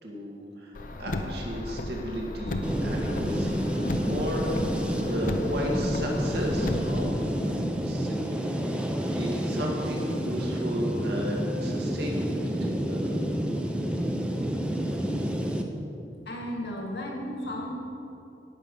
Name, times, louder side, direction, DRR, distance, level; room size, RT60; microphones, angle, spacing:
voice 1, 0.0-0.7 1.0-7.4 7.8-12.5 12.8-13.1, equal, 65° right, -1 dB, 2.0 m, -34 dB
Car, 0.7-7.1, left 1 dB, 50° left, 0.7 m, -35 dB
sound 1, 2.6-15.6, equal, 5° right, 0.7 m, -29 dB
voice 2, 16.3-17.7, left 1 dB, 75° left, 1 dB, 2.0 m, -34 dB
17.5 x 6.6 x 5.5 m, 2.8 s
head